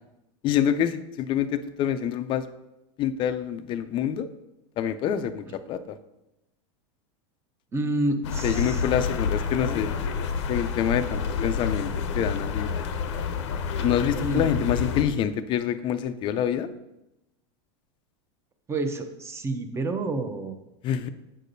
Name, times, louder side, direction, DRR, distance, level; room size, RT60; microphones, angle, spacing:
voice 1, 0.4-2.5 3.0-4.3 4.8-6.0 8.4-9.9 10.5-12.7 13.8-16.7 20.8-21.1, left 9 dB, 35° left, 10 dB, 0.4 m, -26 dB
voice 2, 7.7-8.8 9.4-9.5 14.2-14.5 18.7-20.6, right 2 dB, 15° right, 7 dB, 0.7 m, -29 dB
sound 1, 8.2-15.0, left 5 dB, 75° left, 0.6 m, -28 dB
7.5 x 6.5 x 2.6 m, 0.91 s
supercardioid pair, 120°, 15 cm